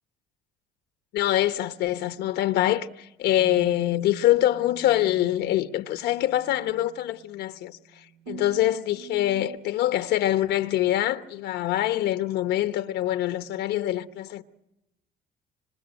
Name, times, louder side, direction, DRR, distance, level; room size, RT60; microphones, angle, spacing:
voice 1, 1.1-14.4, left 13 dB, 80° left, 1.0 m, -25 dB
sound 1, 3.4-9.6, right 10 dB, 80° right, 1.3 m, -47 dB
27.0 x 26.0 x 8.0 m
cardioid pair, 110°, 17 cm